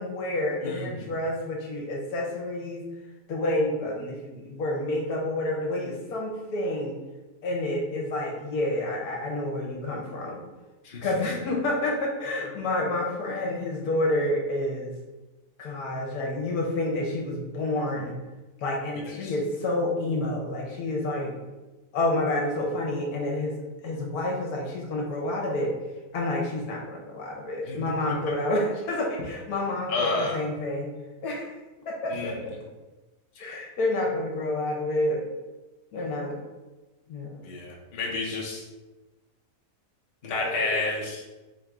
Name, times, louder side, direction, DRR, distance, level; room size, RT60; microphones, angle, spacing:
voice 1, 0.0-2.8 3.3-6.9 7.4-10.4 11.0-14.9 15.6-18.1 18.6-21.5 21.9-23.6 23.8-25.8 26.1-30.9 31.2-31.5 31.8-32.5 33.4-35.2 35.9-36.4 37.1-37.4 40.3-40.7, left 1 dB, 70° left, -1 dB, 1.3 m, -29 dB
voice 2, 0.6-1.1 10.8-11.1 18.9-19.3 27.7-27.8 29.9-30.4 32.1-32.4 37.4-38.6 40.2-41.2, left 3 dB, 40° left, -3 dB, 0.8 m, -30 dB
3.7 x 2.6 x 4.6 m, 1.1 s
omnidirectional pair, 1.7 m